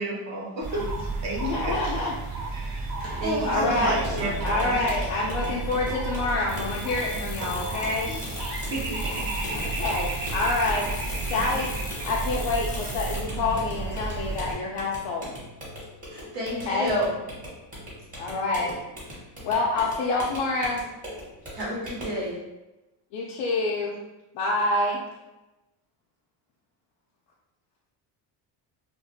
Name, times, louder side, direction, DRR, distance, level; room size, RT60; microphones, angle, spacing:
voice 1, 0.0-2.0 2.5-3.0 3.2-5.0 8.1-8.4 8.7-9.2, right 2 dB, 40° right, -3 dB, 0.8 m, -32 dB
sound 1, 0.6-14.5, right 3 dB, 60° right, 1.1 m, -32 dB
voice 2, 1.4-2.1 3.4-4.0 4.4-8.1 9.5-10.9 11.3-11.7 12.0-15.4 16.7-17.0 18.2-18.7 19.4-20.8 23.1-24.0 24.3-25.0, left 3 dB, 90° left, -3 dB, 0.5 m, -27 dB
voice 3, 3.2-4.4 16.1-17.1 21.5-22.4, equal, 75° right, -6 dB, 1.3 m, -30 dB
sound 2, 4.0-22.2, equal, 20° right, 1.2 m, -40 dB
sound 3, 6.5-13.2, left 2 dB, 20° left, 0.4 m, -40 dB
2.5 x 2.3 x 2.6 m, 1.0 s
cardioid pair, 125°, 44 cm